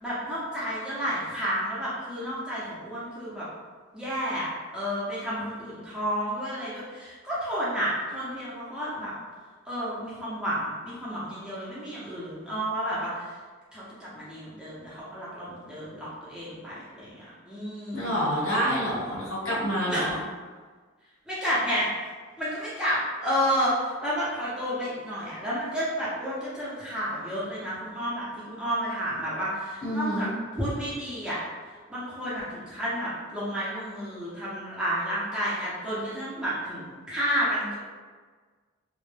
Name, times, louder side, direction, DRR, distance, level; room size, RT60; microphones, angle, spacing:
voice 1, 0.0-3.5 3.9-9.1 9.7-13.4 13.7-18.2 19.9-20.1 21.3-21.9 22.4-30.3 30.5-31.5 31.9-37.7, equal, 5° right, -9 dB, 0.5 m, -31 dB
voice 2, 17.9-20.2 29.8-30.3, equal, 85° left, -7 dB, 1.0 m, -27 dB
2.1 x 2.0 x 3.1 m, 1.5 s
head